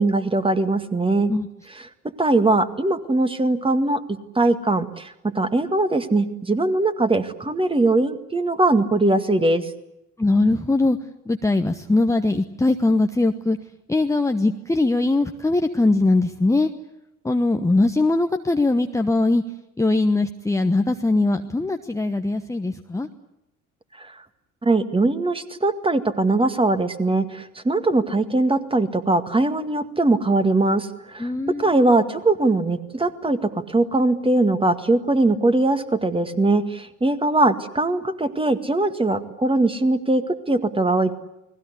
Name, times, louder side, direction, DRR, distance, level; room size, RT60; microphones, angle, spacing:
voice 1, 0.0-1.3 2.2-4.0 4.4-9.7 24.0-24.2 24.6-31.3 31.6-41.1, right 2 dB, 15° right, 9 dB, 2.0 m, -21 dB
voice 2, 10.2-11.0 11.2-13.6 13.9-16.7 17.2-19.4 19.8-23.1 31.2-31.7, left 2 dB, 5° left, 5 dB, 1.1 m, -21 dB
29.5 x 20.5 x 8.3 m, 0.89 s
figure-of-eight pair, 55°, 41 cm